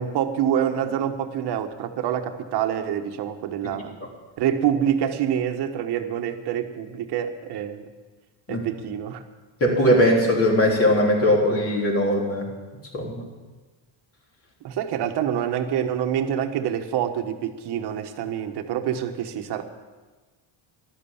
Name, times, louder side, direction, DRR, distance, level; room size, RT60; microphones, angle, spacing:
voice 1, 0.0-3.9 4.4-7.8 8.5-9.2 14.6-19.6, right 9 dB, 55° right, 6 dB, 1.4 m, -26 dB
voice 2, 9.6-12.5 12.9-13.2, equal, 30° left, -1 dB, 3.5 m, -20 dB
14.0 x 12.5 x 7.2 m, 1.3 s
cardioid pair, 150°, 46 cm